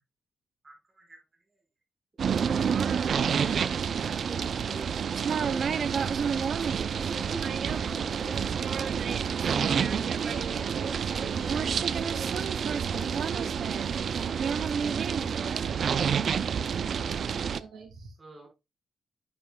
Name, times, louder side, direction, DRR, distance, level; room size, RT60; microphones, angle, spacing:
voice 1, 0.6-1.2 3.8-4.9 5.3-8.6 18.2-18.5, right 2 dB, 25° right, 0 dB, 5.2 m, -45 dB
sound 1, 2.2-17.6, right 7 dB, 55° right, 0.5 m, -28 dB
voice 2, 9.3-16.4 17.5-18.1, right 5 dB, 80° right, 3 dB, 2.1 m, -41 dB
10.5 x 7.9 x 2.3 m, 0.25 s
wide cardioid pair, 140°, 0 cm